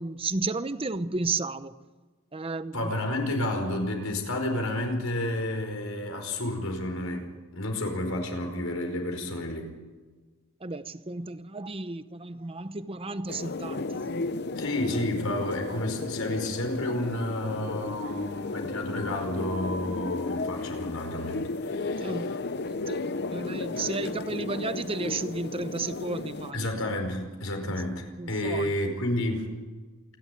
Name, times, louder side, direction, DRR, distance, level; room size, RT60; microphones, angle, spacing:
voice 1, 0.0-1.7 2.3-2.9 10.6-14.0 22.0-22.4 22.7-23.0 23.3-26.7 27.6-27.8 28.2-28.7, right 3 dB, 25° right, 0.8 m, -33 dB
voice 2, 2.7-9.7 14.6-22.2 26.5-29.5, left 1 dB, 80° left, 4.9 m, -31 dB
sound 1, 13.3-26.5, left 3 dB, 50° left, 0.7 m, -34 dB
27.5 x 11.5 x 9.1 m
head